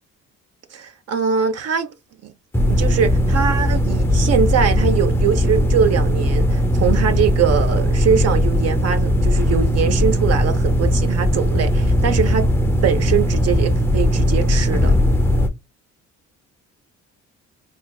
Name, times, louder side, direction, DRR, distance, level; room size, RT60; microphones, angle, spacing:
voice 1, 0.7-1.9 2.2-2.3 2.7-12.5 12.8-15.0, right 7 dB, 55° right, 0.6 m, -22 dB
sound 1, 2.5-15.5, equal, 10° left, 0.4 m, -18 dB
3.9 x 2.3 x 2.2 m
cardioid pair, 90°, 30 cm